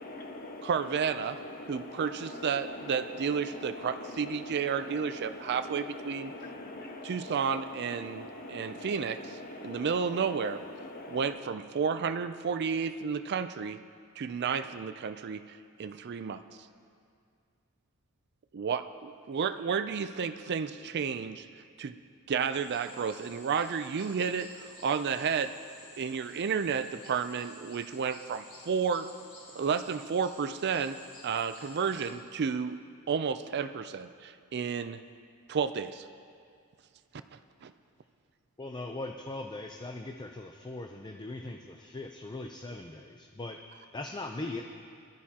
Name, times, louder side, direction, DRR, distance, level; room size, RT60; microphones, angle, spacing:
voice 1, 0.0-11.4, left 2 dB, 40° left, 2 dB, 1.2 m, -43 dB
voice 2, 0.6-1.4 1.7-6.3 7.0-9.2 9.6-10.6 11.1-13.8 14.2-16.4 18.5-22.0 22.3-25.6 26.0-29.1 29.6-32.8 33.1-35.0 35.5-36.1 37.3-37.7, right 6 dB, 50° right, 11 dB, 0.4 m, -32 dB
sound 1, 22.5-32.1, left 2 dB, 85° left, 3.5 m, -53 dB
voice 3, 38.6-44.6, left 2 dB, 20° left, 3 dB, 0.5 m, -40 dB
21.0 x 12.5 x 2.9 m, 2.3 s
head